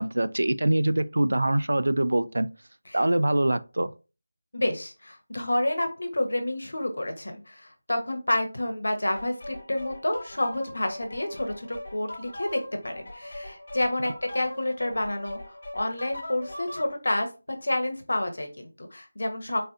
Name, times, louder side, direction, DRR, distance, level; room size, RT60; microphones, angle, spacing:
voice 1, 0.0-2.5 2.9-3.9, right 1 dB, 85° right, 0.3 m, -24 dB
voice 2, 4.5-17.3 17.6-19.6, left 1 dB, 70° left, 1.0 m, -29 dB
sound 1, 9.2-16.9, left 1 dB, 40° left, 1.1 m, -40 dB
3.9 x 2.6 x 2.5 m
figure-of-eight pair, 180°, 0 cm